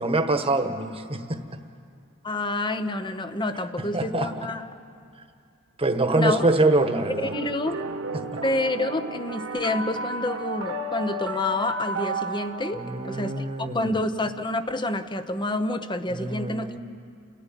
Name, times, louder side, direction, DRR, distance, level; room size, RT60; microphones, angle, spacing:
voice 1, 0.0-1.4 3.8-4.5 5.8-7.3 8.3-8.4 12.7-13.9 16.1-16.8, right 2 dB, 25° right, 7 dB, 1.4 m, -24 dB
voice 2, 2.2-4.7 6.1-6.4 7.2-7.8 8.4-16.7, left 2 dB, 20° left, 10 dB, 0.9 m, -28 dB
sound 1, 6.6-13.6, right 2 dB, 75° right, 1.7 m, -33 dB
30.0 x 14.5 x 10.0 m, 2.4 s
head